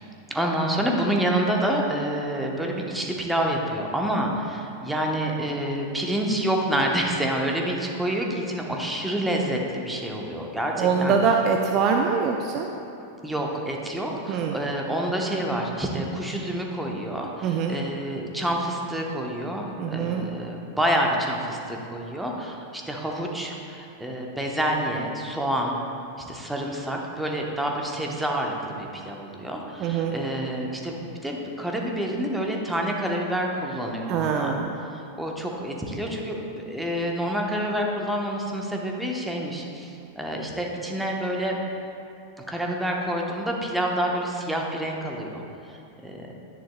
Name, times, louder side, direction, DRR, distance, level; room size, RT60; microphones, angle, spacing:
voice 1, 0.3-11.2 13.2-25.8 26.2-31.0 31.2-34.6 34.9-41.6 42.5-45.4 45.7-45.8 46.0-46.3, right 1 dB, 5° right, 0 dB, 1.1 m, -28 dB
voice 2, 10.8-12.7 14.3-14.5 17.4-17.8 19.8-20.3 29.8-30.1 34.1-34.7, right 6 dB, 35° right, 2 dB, 0.5 m, -23 dB
10.5 x 10.0 x 2.3 m, 2.7 s
figure-of-eight pair, 90°, 0 cm